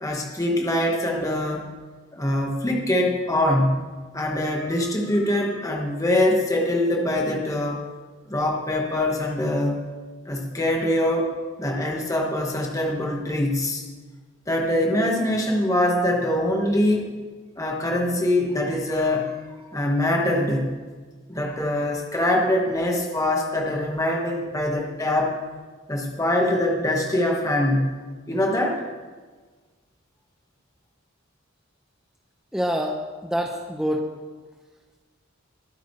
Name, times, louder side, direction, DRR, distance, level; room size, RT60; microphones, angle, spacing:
voice 1, 0.0-1.7 2.1-3.9 4.1-7.8 8.3-9.8 10.3-11.3 11.6-13.8 14.5-17.1 17.6-19.4 19.7-20.8 21.3-25.4 25.9-28.0 28.3-28.8, left 1 dB, 15° left, 0 dB, 1.4 m, -23 dB
voice 2, 32.5-34.1, equal, 5° right, 0 dB, 0.8 m, -26 dB
22.0 x 9.0 x 3.3 m, 1.4 s
head